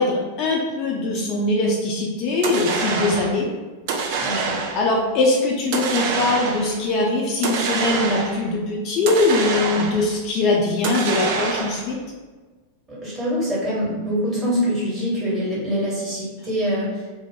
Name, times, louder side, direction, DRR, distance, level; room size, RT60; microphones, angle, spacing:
voice 1, 0.0-3.5 4.0-4.3 4.7-12.0, left 3 dB, 40° left, -1 dB, 0.4 m, -22 dB
sound 1, 2.4-3.4 3.9-4.9 5.7-6.8 7.4-8.5 9.1-10.1 10.8-11.9, right 4 dB, 50° right, 0.4 m, -25 dB
voice 2, 4.2-4.6 12.9-16.9, equal, 20° right, -7 dB, 1.3 m, -24 dB
2.3 x 2.0 x 3.7 m, 1.3 s
figure-of-eight pair, 90°, 0 cm